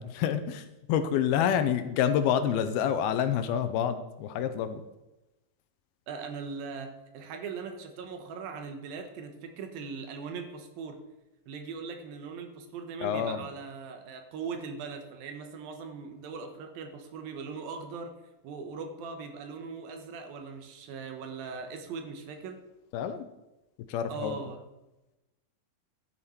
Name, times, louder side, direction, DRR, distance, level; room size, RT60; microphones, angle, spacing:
voice 1, 0.0-4.8 13.0-13.5 22.9-23.3 23.9-24.4, left 9 dB, 85° left, 10 dB, 2.5 m, -28 dB
voice 2, 6.1-11.0 11.5-18.1 18.4-22.6 24.1-24.6, right 5 dB, 70° right, 5 dB, 2.7 m, -40 dB
12.0 x 8.8 x 4.3 m, 0.99 s
omnidirectional pair, 4.6 m